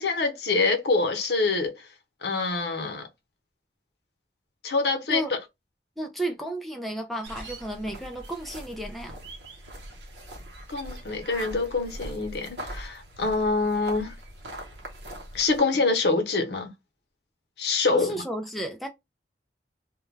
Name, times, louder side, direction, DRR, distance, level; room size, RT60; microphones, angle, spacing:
voice 1, 0.0-1.8 2.2-3.1 4.6-5.4 10.7-14.1 15.3-16.7 17.6-18.2, left 3 dB, 75° left, 0.8 m, -25 dB
voice 2, 6.0-9.2 17.9-18.9, right 1 dB, ahead, 0.3 m, -33 dB
sound 1, 7.2-15.6, right 1 dB, 85° right, 0.8 m, -41 dB
2.2 x 2.2 x 3.1 m
head